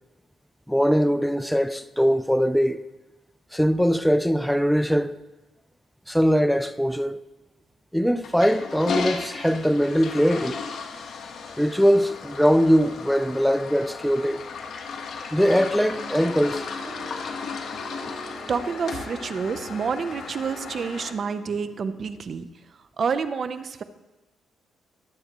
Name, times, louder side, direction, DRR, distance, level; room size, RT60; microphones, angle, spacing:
voice 1, 0.7-2.8 3.5-5.2 6.1-7.2 7.9-10.6 11.6-14.4 15.3-16.7, equal, ahead, 0.5 m, -21 dB
Toilet flush, 8.2-21.1, left 5 dB, 60° left, 1.3 m, -35 dB
sound 1, 15.6-22.2, right 2 dB, 30° right, 2.5 m, -44 dB
voice 2, 18.5-22.5 23.0-23.8, right 5 dB, 50° right, 0.7 m, -28 dB
21.0 x 7.9 x 3.1 m
cardioid pair, 90°, 0 cm